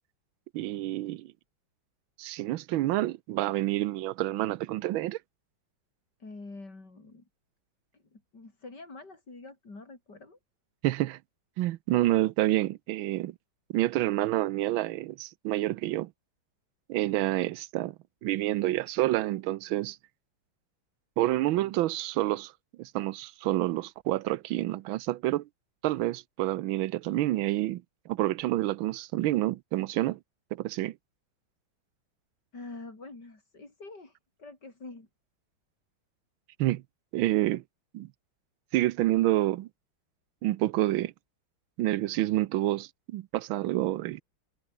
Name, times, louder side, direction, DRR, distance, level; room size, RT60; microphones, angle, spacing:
voice 1, 0.5-1.3 2.2-5.2 10.8-11.2 11.6-13.3 13.7-16.1 16.9-17.9 18.2-20.0 21.2-22.5 22.8-25.5 25.8-30.2 30.5-31.0 36.6-36.8 37.1-37.6 37.9-38.1 38.7-39.7 40.4-41.1 41.8-44.2, right 15 dB, 85° right, 1.5 m, -28 dB
voice 2, 6.2-7.3 7.9-10.4 32.5-35.1, left 3 dB, 55° left, 5.8 m, -46 dB
omnidirectional pair, 2.2 m